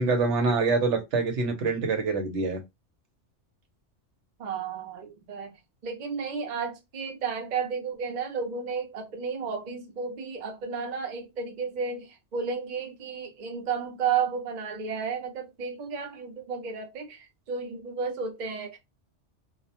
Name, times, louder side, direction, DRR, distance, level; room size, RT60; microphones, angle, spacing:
voice 1, 0.0-2.6, right 4 dB, 70° right, 1.0 m, -25 dB
voice 2, 4.4-5.6 5.8-18.8, right 6 dB, 45° right, 0.6 m, -32 dB
2.3 x 2.1 x 2.7 m
omnidirectional pair, 1.3 m